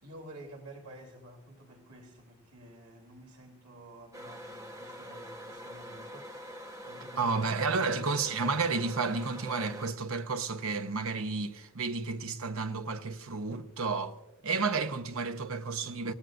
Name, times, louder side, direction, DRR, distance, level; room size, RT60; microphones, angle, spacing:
voice 1, 0.0-7.3, right 1 dB, 90° right, 3.2 m, -51 dB
sound 1, 4.1-9.9, equal, 15° right, 1.1 m, -45 dB
voice 2, 7.2-14.2 14.4-16.1, right 4 dB, 70° right, 0.9 m, -31 dB
27.5 x 18.0 x 2.6 m
head